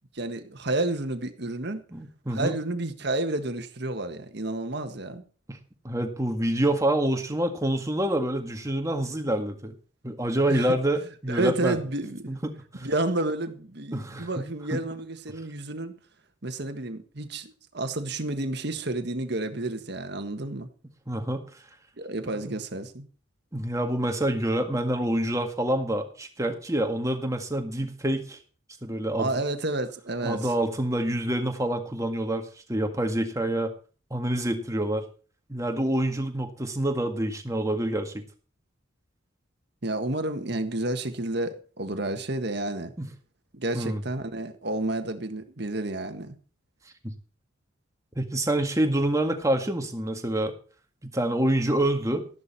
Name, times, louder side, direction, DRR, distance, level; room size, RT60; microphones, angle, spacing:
voice 1, 0.1-1.8 2.3-5.2 10.5-10.7 11.3-12.3 12.8-15.9 16.4-20.7 22.0-23.1 29.2-30.4 39.8-42.9 43.5-46.4, right 2 dB, 55° right, 8 dB, 1.6 m, -30 dB
voice 2, 1.9-2.6 5.5-5.6 5.8-9.7 10.0-11.8 12.3-12.9 13.9-14.5 14.7-14.8 21.1-21.5 22.2-22.4 23.5-28.4 28.8-29.3 30.2-33.7 34.1-35.0 35.5-38.2 43.0-43.1 43.7-44.0 47.0-47.1 48.2-50.5 51.0-52.3, right 1 dB, 15° right, 5 dB, 1.8 m, -27 dB
13.0 x 11.5 x 4.3 m, 0.38 s
head